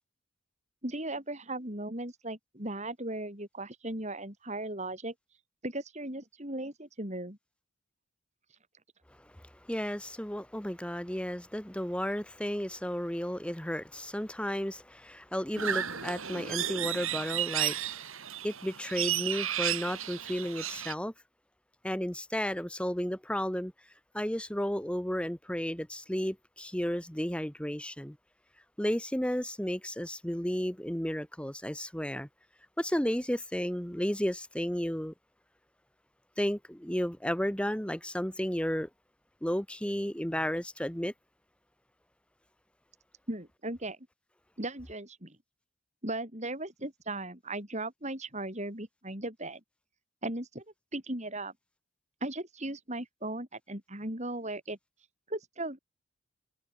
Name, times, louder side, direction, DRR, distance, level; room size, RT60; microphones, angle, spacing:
voice 1, 0.8-5.1 5.6-7.4 43.3-44.0 44.6-45.4 46.0-49.6 50.2-50.6 50.9-51.5 52.2-54.8 55.3-55.8, right 1 dB, 30° right, 4.6 m, -37 dB
voice 2, 9.7-17.8 18.4-21.1 21.8-23.7 24.1-28.2 28.8-32.3 32.8-35.1 36.4-38.9 39.4-41.1, equal, 5° left, 1.0 m, -33 dB
sound 1, 15.6-20.9, right 10 dB, 70° right, 5.9 m, -33 dB
head